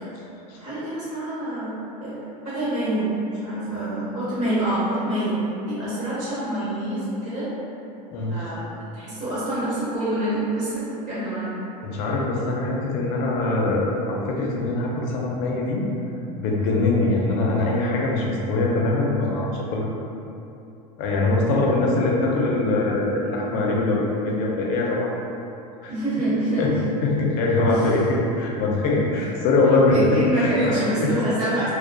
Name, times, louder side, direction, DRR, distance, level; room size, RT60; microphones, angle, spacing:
voice 1, 0.6-2.2 2.4-5.3 5.7-7.5 8.3-8.6 8.9-11.7 12.0-12.2 21.6-21.9 25.9-26.7 27.6-27.8 28.9-29.1 29.9-31.7, right 1 dB, 35° right, -12 dB, 1.1 m, -26 dB
voice 2, 11.8-15.8 16.4-19.9 21.0-25.1 25.8-25.9 26.6-26.7 27.0-31.1, left 2 dB, 50° left, -2 dB, 0.5 m, -22 dB
2.2 x 2.2 x 2.6 m, 2.8 s
supercardioid pair, 115°, 21 cm